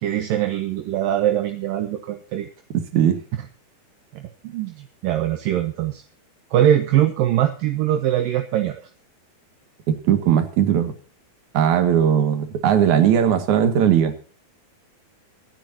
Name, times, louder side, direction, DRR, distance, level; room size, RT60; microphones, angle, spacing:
voice 1, 0.0-2.5 4.2-6.0 6.5-8.8, right 11 dB, 70° right, 6 dB, 2.6 m, -22 dB
voice 2, 9.9-10.9 11.5-14.1, right 9 dB, 55° right, 7 dB, 3.1 m, -18 dB
26.0 x 10.0 x 2.9 m, 0.38 s
omnidirectional pair, 4.5 m